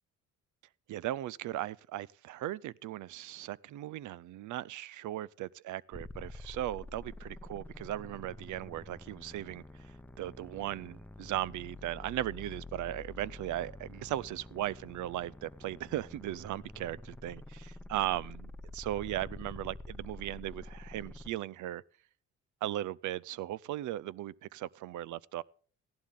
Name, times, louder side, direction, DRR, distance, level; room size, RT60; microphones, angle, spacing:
voice 1, 0.9-9.6 10.2-21.8 22.6-25.4, right 14 dB, 75° right, 0.6 m, -37 dB
sound 1, 5.9-21.3, left 2 dB, 5° left, 0.8 m, -48 dB
15.0 x 11.5 x 3.6 m
cardioid pair, 90°, 30 cm